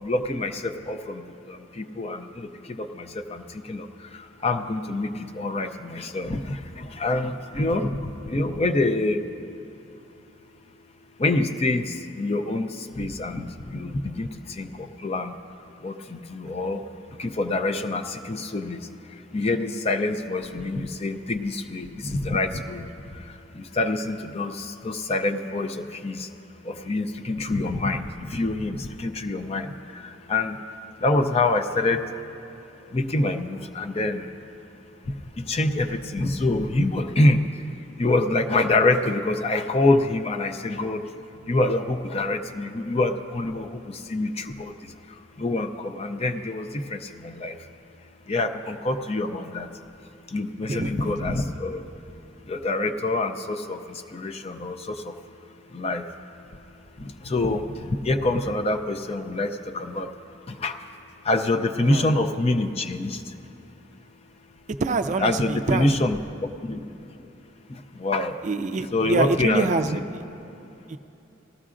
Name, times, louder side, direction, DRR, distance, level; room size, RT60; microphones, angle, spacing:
voice 1, 0.0-9.3 11.2-15.3 15.8-16.9 17.2-18.9 19.3-22.9 23.1-26.3 26.6-30.6 31.0-32.1 32.9-34.3 35.4-37.4 38.0-41.0 41.5-44.7 45.1-47.6 48.3-49.7 50.3-51.8 52.5-55.1 55.7-56.1 57.0-60.1 60.5-60.8 61.2-63.2 65.2-66.9 67.7-68.4 68.9-69.7 69.9-70.0, left 2 dB, 30° left, 6 dB, 0.5 m, -26 dB
voice 2, 50.7-51.1 61.9-62.0 64.8-65.9 68.4-70.2 70.9-71.0, right 3 dB, 40° right, 8 dB, 0.4 m, -25 dB
18.5 x 13.5 x 2.5 m, 2.9 s
head